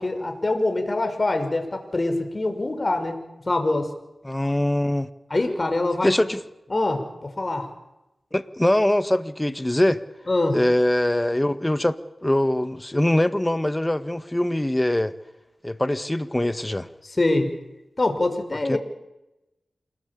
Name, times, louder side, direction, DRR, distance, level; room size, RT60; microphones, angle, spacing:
voice 1, 0.0-3.2 3.5-3.9 5.3-6.1 6.7-7.7 10.3-10.6 17.0-17.5 18.0-18.8, left 2 dB, 40° left, 6.0 m, -24 dB
voice 2, 4.2-5.1 6.0-6.4 8.3-10.0 10.5-15.1 15.6-16.9 18.7-18.8, left 1 dB, 15° left, 1.7 m, -22 dB
28.0 x 20.5 x 8.7 m
cardioid pair, 55°, 0 cm